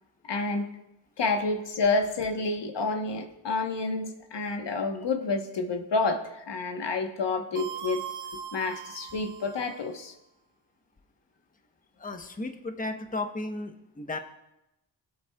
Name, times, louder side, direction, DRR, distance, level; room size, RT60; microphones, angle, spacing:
voice 1, 0.3-0.7 1.2-8.0 8.5-10.1, left 3 dB, 65° left, 5 dB, 1.3 m, -29 dB
sound 1, 7.6-9.9, right 9 dB, 60° right, 1.8 m, -40 dB
voice 2, 12.0-14.2, left 2 dB, 20° left, 6 dB, 1.0 m, -34 dB
17.5 x 8.7 x 2.4 m, 0.88 s
cardioid pair, 55°, 46 cm